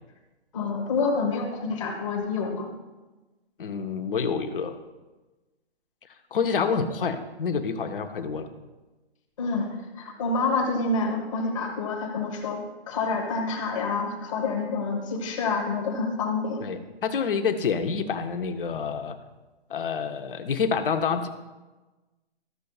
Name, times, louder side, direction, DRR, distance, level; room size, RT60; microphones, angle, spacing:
voice 1, 0.5-2.7 9.4-16.6, left 3 dB, 30° left, 0 dB, 1.3 m, -28 dB
voice 2, 3.6-4.8 6.3-8.5 16.6-19.2 19.7-21.3, left 6 dB, 55° left, 8 dB, 0.9 m, -27 dB
14.0 x 6.6 x 2.4 m, 1.2 s
hypercardioid pair, 160°, 32 cm